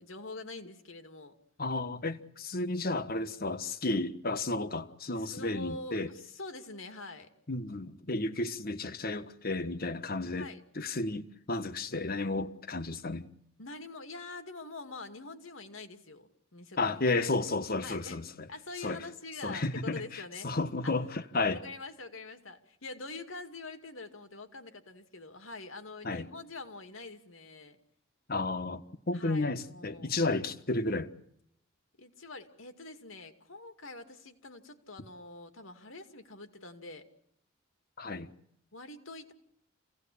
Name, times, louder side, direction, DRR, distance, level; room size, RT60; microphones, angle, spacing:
voice 1, 0.0-1.4 5.2-7.3 10.4-10.6 13.6-17.0 17.8-18.2 18.5-20.5 20.8-20.9 21.5-27.8 29.1-30.2 32.0-37.1 38.7-39.3, left 3 dB, 85° left, 2.5 m, -45 dB
voice 2, 1.6-6.1 7.5-10.5 10.7-13.3 16.8-18.5 18.8-19.0 19.4-21.6 26.0-26.3 28.3-31.1 38.0-38.3, left 2 dB, 50° left, 1.4 m, -32 dB
28.0 x 17.5 x 8.6 m
head